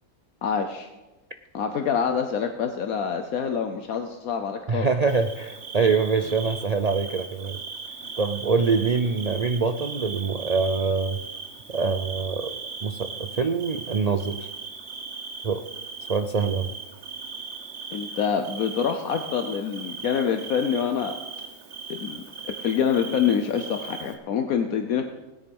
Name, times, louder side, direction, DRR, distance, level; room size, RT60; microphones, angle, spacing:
voice 1, 0.4-0.9 1.5-4.9 8.0-8.1 17.9-21.2 22.0-22.2 22.6-25.0, left 7 dB, 75° left, 6 dB, 1.3 m, -26 dB
voice 2, 4.7-7.6 8.2-11.2 11.7-14.5 15.4-15.7 16.1-16.7, right 5 dB, 75° right, 8 dB, 0.3 m, -25 dB
Bird / Cricket, 5.1-24.1, right 4 dB, 50° right, 1.5 m, -38 dB
17.5 x 9.9 x 5.4 m, 1.1 s
omnidirectional pair, 1.5 m